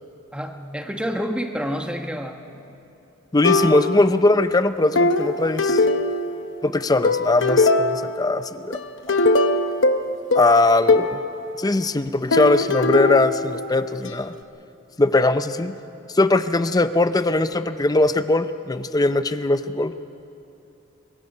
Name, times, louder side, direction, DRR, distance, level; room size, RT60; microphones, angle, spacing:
voice 1, 0.3-2.4, equal, 5° right, 4 dB, 1.1 m, -28 dB
voice 2, 3.3-5.9 6.6-8.8 9.1-9.2 10.3-11.2 11.6-14.3 15.0-15.7 16.1-19.9, left 2 dB, 20° left, 12 dB, 0.5 m, -20 dB
sound 1, 3.4-4.2 5.0-6.6 7.0-8.3 8.7-11.2 12.3-14.1, left 3 dB, 60° left, 0.9 m, -21 dB
24.0 x 22.0 x 5.5 m, 2.8 s
head